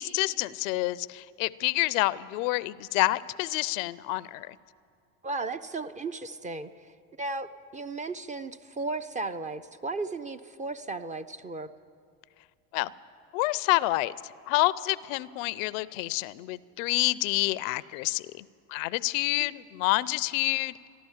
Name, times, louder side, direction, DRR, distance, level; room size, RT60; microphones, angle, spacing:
voice 1, 0.0-4.6 12.7-12.9 13.3-14.1 14.5-18.4 18.7-20.7, left 20 dB, 75° left, 19 dB, 0.5 m, -28 dB
voice 2, 5.2-11.7 19.3-19.6, right 3 dB, 20° right, 11 dB, 0.4 m, -35 dB
14.0 x 11.5 x 7.2 m, 2.4 s
hypercardioid pair, 85°, 40 cm